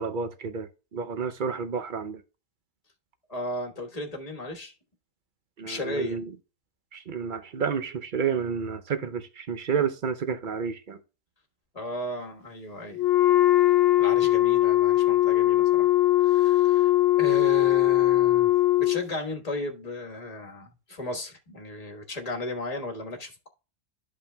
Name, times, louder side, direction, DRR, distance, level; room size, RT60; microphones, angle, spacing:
voice 1, 0.0-2.2 5.6-6.3 6.9-11.0, right 6 dB, 45° right, 0.7 m, -30 dB
voice 2, 3.3-4.7 5.6-6.2 11.7-13.0 14.0-15.9 16.2-16.9 17.2-18.5 18.8-23.5, left 1 dB, 30° left, 1.4 m, -35 dB
Wind instrument woodwind instrument, 12.9-19.1, left 16 dB, 65° left, 0.6 m, -20 dB
13.0 x 5.2 x 2.2 m
omnidirectional pair, 1.5 m